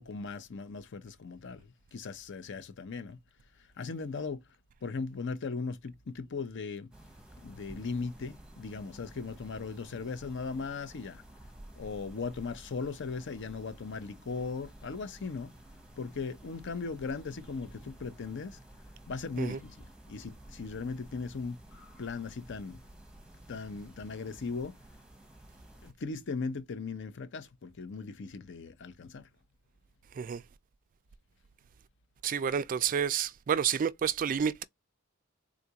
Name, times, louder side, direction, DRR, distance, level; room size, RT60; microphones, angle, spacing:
voice 1, 0.0-3.2 3.8-4.4 4.8-6.9 7.4-11.2 11.8-15.5 16.0-18.6 19.1-21.6 22.0-22.8 23.5-24.8 25.8-29.3, left 4 dB, 60° left, 0.6 m, -38 dB
sound 1, 6.9-25.9, right 1 dB, 5° right, 0.8 m, -53 dB
voice 2, 32.2-34.6, right 8 dB, 40° right, 0.3 m, -29 dB
3.8 x 2.4 x 2.8 m
head